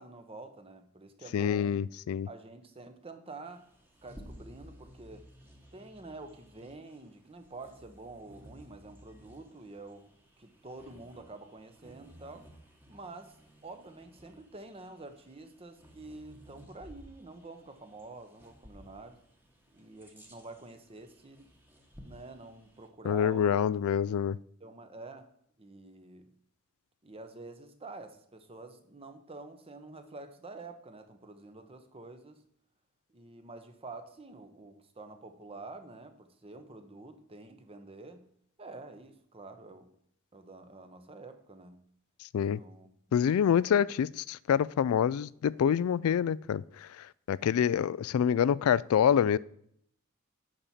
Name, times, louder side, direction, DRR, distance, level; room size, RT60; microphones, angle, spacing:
voice 1, 0.0-1.8 2.2-3.7 4.0-5.2 5.7-10.1 10.4-12.5 12.9-13.4 13.6-19.2 19.7-21.5 22.0-23.6 24.6-25.3 25.6-26.3 27.0-32.4 33.1-38.2 38.6-39.9 40.3-41.8 42.5-42.9, right 3 dB, 30° right, 1.0 m, -48 dB
voice 2, 1.3-2.3 23.0-24.4 42.3-42.6 43.1-49.4, left 8 dB, 85° left, 0.3 m, -27 dB
Bird vocalization bird call bird song, 3.4-22.9, equal, 10° right, 1.4 m, -56 dB
10.5 x 4.2 x 7.2 m
head